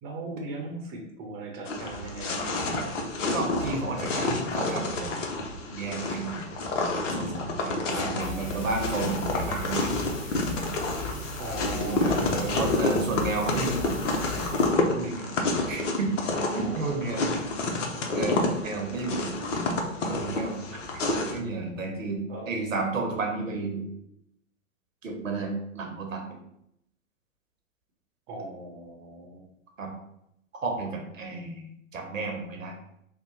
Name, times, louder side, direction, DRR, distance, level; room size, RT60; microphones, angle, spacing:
voice 1, 0.0-2.6 7.9-8.5 11.4-12.7 16.6-17.4 22.3-22.5 28.3-29.4, right 3 dB, 30° right, 1 dB, 0.8 m, -38 dB
sound 1, 1.6-21.4, left 2 dB, 65° left, 0.7 m, -29 dB
voice 2, 3.3-5.2 5.6-6.5 7.0-9.8 11.6-12.0 12.5-14.0 14.9-15.3 15.7-16.1 16.4-17.3 18.1-19.3 20.0-20.8 21.2-22.2 22.5-23.8 25.0-26.4 29.8-29.9 30.5-32.7, right 3 dB, 80° right, 2 dB, 0.9 m, -32 dB
sound 2, 8.2-14.7, left 3 dB, 30° left, 1.3 m, -37 dB
2.8 x 2.2 x 3.9 m, 0.77 s
figure-of-eight pair, 110°, 39 cm